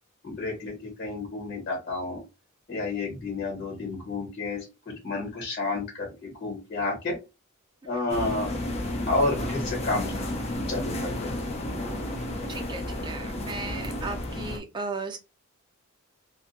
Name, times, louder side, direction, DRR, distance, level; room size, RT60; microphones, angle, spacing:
voice 1, 0.2-2.2 2.7-7.2 7.8-8.5 9.1-10.1 10.7-11.3, left 2 dB, 50° left, 1.4 m, -30 dB
sound 1, 8.1-14.6, left 1 dB, 30° left, 0.5 m, -32 dB
voice 2, 12.5-15.2, right 3 dB, 20° right, 0.5 m, -36 dB
2.4 x 2.2 x 2.7 m
head